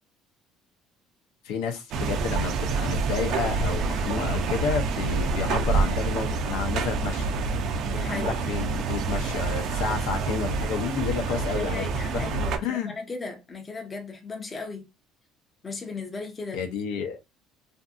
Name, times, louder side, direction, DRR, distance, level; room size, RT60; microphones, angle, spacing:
voice 1, 1.4-7.4 8.1-11.9 12.1-12.9 16.5-17.2, left 6 dB, 85° left, 0.7 m, -31 dB
sound 1, 1.9-12.6, right 4 dB, 55° right, 0.4 m, -27 dB
voice 2, 7.8-8.5 11.3-14.9 15.6-16.7, left 3 dB, 20° left, 0.6 m, -37 dB
2.6 x 2.6 x 2.3 m
cardioid pair, 150°, 0 cm